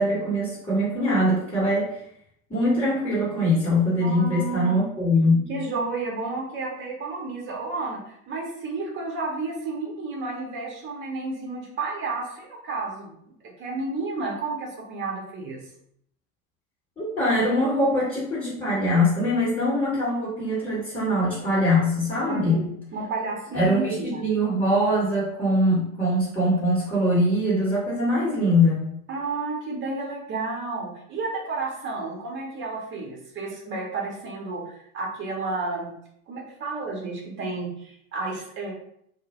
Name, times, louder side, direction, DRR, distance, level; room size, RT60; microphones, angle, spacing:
voice 1, 0.0-2.0 2.5-5.5 17.0-22.6 23.5-28.8, left 1 dB, 15° left, -9 dB, 1.0 m, -22 dB
voice 2, 4.0-4.8 5.5-15.6 22.3-22.7 22.9-24.2 29.1-35.9 36.3-38.7, right 3 dB, 30° right, -1 dB, 0.8 m, -31 dB
2.1 x 2.0 x 2.9 m, 0.70 s
figure-of-eight pair, 80°, 42 cm